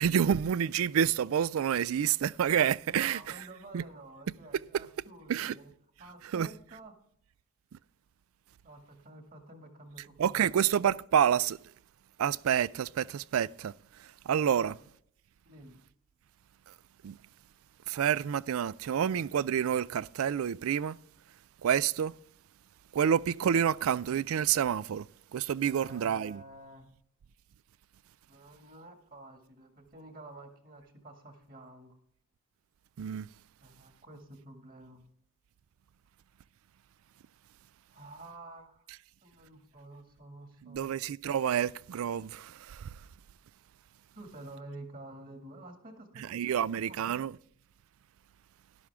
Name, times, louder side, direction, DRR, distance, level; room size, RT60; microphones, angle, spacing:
voice 1, 0.0-3.2 3.7-3.8 5.3-5.6 6.3-6.5 10.2-11.6 12.2-13.7 14.0-14.7 17.0-17.2 17.9-21.0 21.6-22.1 22.9-25.1 25.3-26.4 33.0-33.3 40.6-42.9 46.3-47.4, right 8 dB, 70° right, 0.3 m, -28 dB
voice 2, 2.9-5.7 6.0-6.9 8.6-10.6 15.4-15.8 25.7-26.9 28.3-31.9 33.6-35.1 37.9-38.9 39.2-40.8 44.1-47.0, right 2 dB, 40° right, 2.1 m, -50 dB
12.5 x 11.5 x 3.5 m
head